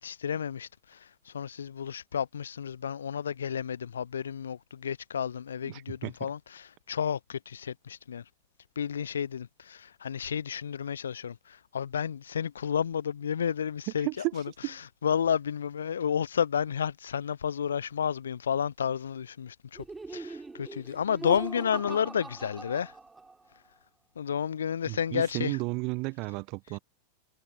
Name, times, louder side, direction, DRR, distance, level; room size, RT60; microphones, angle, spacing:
voice 1, 0.0-8.2 8.8-14.4 15.0-22.9 24.2-25.6, left 8 dB, 70° left, 1.0 m, -31 dB
voice 2, 5.6-6.1 14.0-14.3 14.6-14.7 24.9-26.8, right 27 dB, 40° right, 1.3 m, -33 dB
Laughter, 19.7-23.5, right 3 dB, 10° right, 3.9 m, -41 dB
figure-of-eight pair, 90°, 0 cm